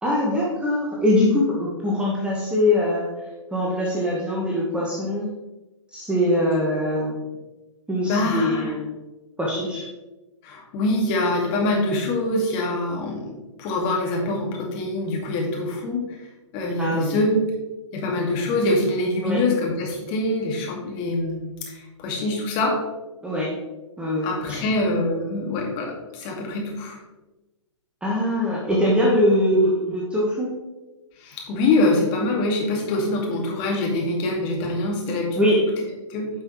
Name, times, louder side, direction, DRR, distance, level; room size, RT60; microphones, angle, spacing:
voice 1, 0.0-3.1 3.5-5.3 5.9-7.1 7.9-8.9 9.4-9.8 16.8-17.2 19.2-19.4 23.2-23.5 24.0-24.7 28.0-30.5 35.4-35.6, left 1 dB, 5° right, -5 dB, 1.2 m, -22 dB
voice 2, 8.0-8.7 10.4-16.0 16.5-17.5 17.9-22.8 24.2-27.0 31.2-35.6 36.1-36.3, left 2 dB, 30° left, 0 dB, 2.0 m, -24 dB
9.6 x 5.6 x 3.1 m, 1.1 s
figure-of-eight pair, 125°, 16 cm